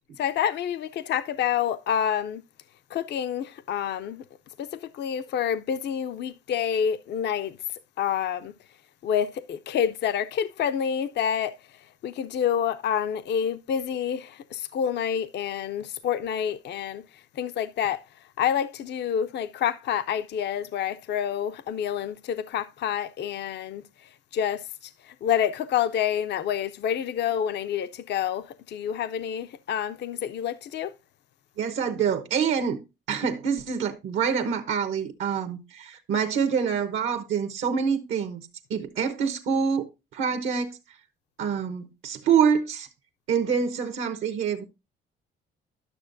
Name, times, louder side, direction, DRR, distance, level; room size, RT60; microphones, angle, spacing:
voice 1, 0.2-2.4 2.9-4.2 4.6-8.5 9.0-30.9, left 9 dB, 60° left, 0.5 m, -28 dB
voice 2, 31.6-32.8 33.1-39.9 40.1-40.8 41.4-42.9 43.3-44.6, right 7 dB, 80° right, 0.9 m, -26 dB
11.5 x 6.3 x 2.5 m
cardioid pair, 90°, 20 cm